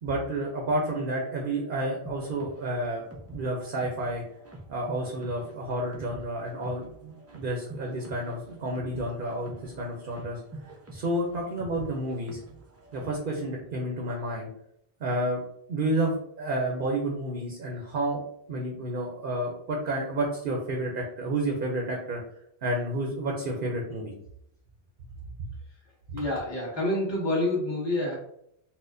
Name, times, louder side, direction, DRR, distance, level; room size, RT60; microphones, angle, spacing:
voice 1, 0.0-3.0 3.3-4.2 4.7-10.4 10.9-12.4 12.9-14.5 15.0-15.4 15.7-18.2 18.5-22.2 22.6-24.1, right 1 dB, 60° right, 0 dB, 0.7 m, -30 dB
sound 1, 2.0-13.3, right 1 dB, 25° right, 0.3 m, -47 dB
voice 2, 26.1-28.1, left 1 dB, 25° left, -7 dB, 1.4 m, -27 dB
4.2 x 2.1 x 2.5 m, 0.73 s
omnidirectional pair, 1.1 m